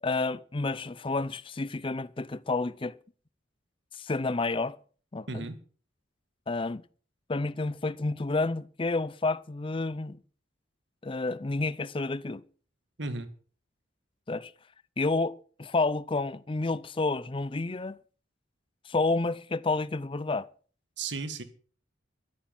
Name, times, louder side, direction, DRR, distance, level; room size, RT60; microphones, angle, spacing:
voice 1, 0.0-3.0 3.9-4.8 5.1-5.5 6.5-6.8 7.3-10.2 11.0-12.4 14.3-14.5 15.0-18.0 18.9-20.5, left 3 dB, 30° left, 0.5 m, -30 dB
voice 2, 5.3-5.6 13.0-13.3 21.0-21.4, right 3 dB, 65° right, 1.9 m, -34 dB
13.5 x 8.7 x 7.3 m
head